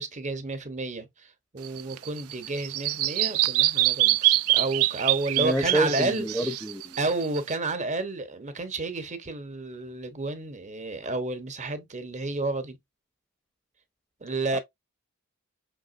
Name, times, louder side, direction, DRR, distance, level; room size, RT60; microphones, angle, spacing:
voice 1, 0.0-6.5 7.0-12.8 14.2-14.6, right 2 dB, 35° right, 0.9 m, -31 dB
Bird vocalization bird call bird song, 1.6-7.5, right 16 dB, 80° right, 0.4 m, -25 dB
voice 2, 5.4-7.0 14.5-14.6, right 1 dB, 5° left, 0.6 m, -28 dB
5.7 x 3.6 x 2.5 m
head